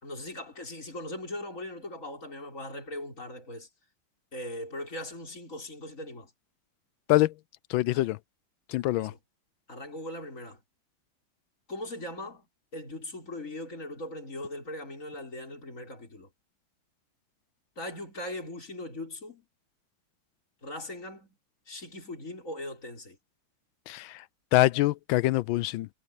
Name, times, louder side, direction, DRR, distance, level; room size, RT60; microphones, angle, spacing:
voice 1, 0.0-3.7 4.3-6.3 7.9-8.1 8.9-9.2 9.7-10.6 11.7-12.5 12.7-16.3 17.8-19.5 20.6-21.4 21.7-23.2, left 1 dB, 40° left, 6.1 m, -39 dB
voice 2, 7.7-8.2 8.7-9.1 23.9-24.2 24.5-25.9, left 17 dB, 80° left, 1.3 m, -24 dB
omnidirectional pair, 2.2 m